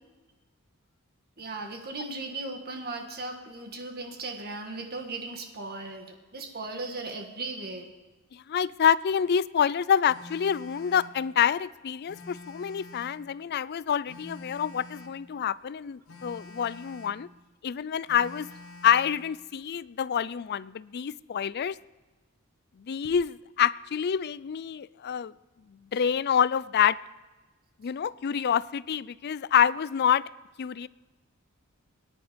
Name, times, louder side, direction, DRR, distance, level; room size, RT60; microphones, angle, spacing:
voice 1, 1.4-7.9, right 3 dB, 45° right, 4 dB, 1.7 m, -37 dB
voice 2, 8.3-17.3 17.6-18.5 18.8-21.8 22.9-25.3 25.9-27.0 27.8-30.2 30.6-30.9, left 8 dB, 50° left, 19 dB, 0.4 m, -27 dB
Telephone, 10.1-11.2 12.1-13.2 14.1-15.2 16.1-17.2 18.1-19.2, left 2 dB, 85° left, 2.5 m, -47 dB
23.5 x 10.5 x 5.2 m, 1.2 s
head